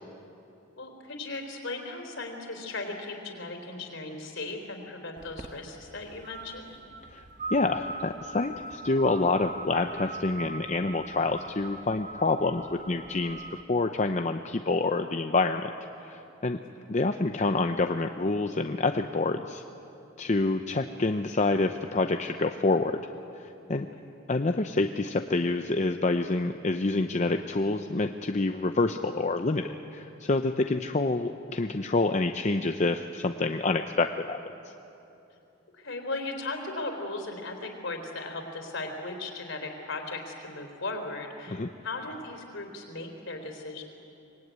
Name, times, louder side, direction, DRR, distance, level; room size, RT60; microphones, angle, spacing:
voice 1, 0.8-6.8 16.5-16.9 23.9-24.1 35.7-43.8, left 2 dB, 65° left, 4 dB, 3.7 m, -37 dB
sound 1, 5.2-13.6, right 2 dB, 40° right, 1.2 m, -41 dB
voice 2, 7.5-15.7 16.0-16.6 16.9-19.6 20.2-23.0 23.4-23.9 24.3-34.4 41.5-41.7, left 3 dB, 35° left, 6 dB, 0.6 m, -27 dB
24.5 x 20.0 x 9.4 m, 2.9 s
head